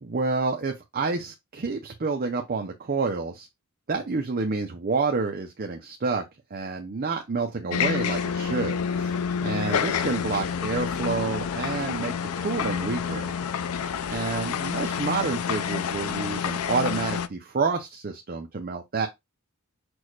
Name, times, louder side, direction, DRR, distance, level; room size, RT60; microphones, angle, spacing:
voice 1, 0.0-3.5 3.9-6.2 6.5-13.3 14.1-19.1, right 4 dB, 45° right, 0.6 m, -29 dB
sound 1, 7.7-17.3, left 7 dB, 80° left, 0.4 m, -28 dB
6.1 x 2.4 x 3.2 m
head